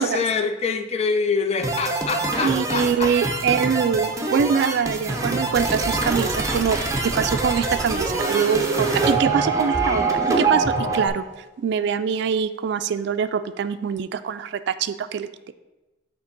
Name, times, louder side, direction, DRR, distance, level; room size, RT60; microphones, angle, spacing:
voice 1, 0.0-3.1, left 5 dB, 35° left, 8 dB, 0.4 m, -25 dB
sound 1, 1.6-11.1, right 3 dB, 15° right, 0.7 m, -24 dB
voice 2, 2.4-6.8 7.0-11.3 11.6-15.5, right 6 dB, 60° right, 11 dB, 0.3 m, -24 dB
6.8 x 2.9 x 5.8 m, 1.1 s
head